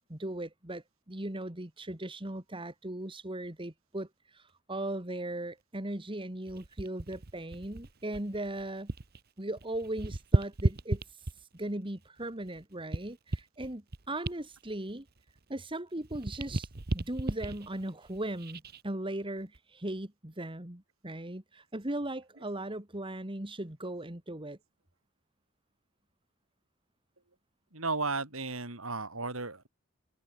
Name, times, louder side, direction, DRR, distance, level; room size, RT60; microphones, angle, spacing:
voice 1, 0.0-8.9 9.4-11.0 11.5-15.1 15.5-16.7 16.9-24.6, right 1 dB, 25° right, 2.3 m, -38 dB
sound 1, 6.5-9.2 9.5-11.6 12.2-15.7 16.0-18.8 19.4-19.6, right 2 dB, 50° right, 1.2 m, -34 dB
voice 2, 27.7-29.7, right 3 dB, 80° right, 5.9 m, -34 dB
head